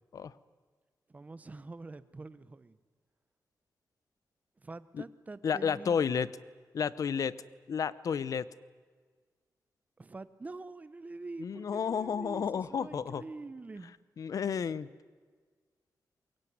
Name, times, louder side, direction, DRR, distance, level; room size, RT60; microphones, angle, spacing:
voice 1, 1.1-2.8 4.6-6.0 10.0-13.9, right 3 dB, 20° right, 0.9 m, -45 dB
voice 2, 5.4-6.3 6.7-7.3 7.7-8.5 11.4-13.2 14.2-14.9, left 7 dB, 55° left, 0.8 m, -31 dB
23.5 x 22.5 x 9.4 m
wide cardioid pair, 165°, 7 cm